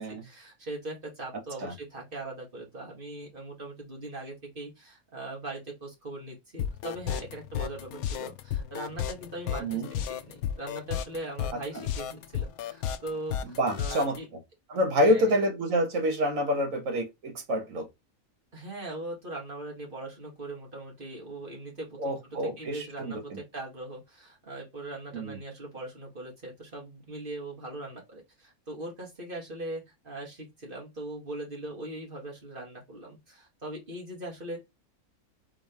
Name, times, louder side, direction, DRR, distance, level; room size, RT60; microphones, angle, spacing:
voice 1, 0.0-14.3 15.0-15.3 18.5-34.6, right 2 dB, 35° right, 2.1 m, -40 dB
sound 1, 6.6-14.2, left 9 dB, 85° left, 1.1 m, -33 dB
voice 2, 9.6-9.9 13.4-14.2 14.7-17.9 22.0-23.4 25.1-25.4, equal, 65° right, 1.6 m, -27 dB
3.9 x 3.8 x 3.3 m
omnidirectional pair, 1.5 m